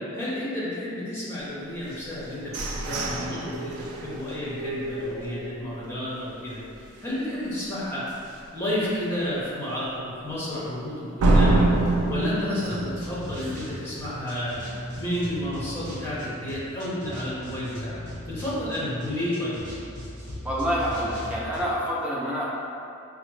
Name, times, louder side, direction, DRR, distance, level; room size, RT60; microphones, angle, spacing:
voice 1, 0.1-6.6 7.0-8.0 8.5-17.9 18.3-19.6, left 1 dB, 10° left, -9 dB, 0.8 m, -31 dB
sound 1, 1.9-5.8 6.3-6.4 6.7-7.1 7.5-7.6 8.1-8.2 11.2-13.9, right 2 dB, 85° right, 0.4 m, -26 dB
sound 2, 12.6-21.6, left 1 dB, 55° right, 1.3 m, -38 dB
voice 2, 20.4-22.5, equal, 5° right, -6 dB, 0.4 m, -27 dB
4.6 x 2.0 x 3.1 m, 2.6 s
head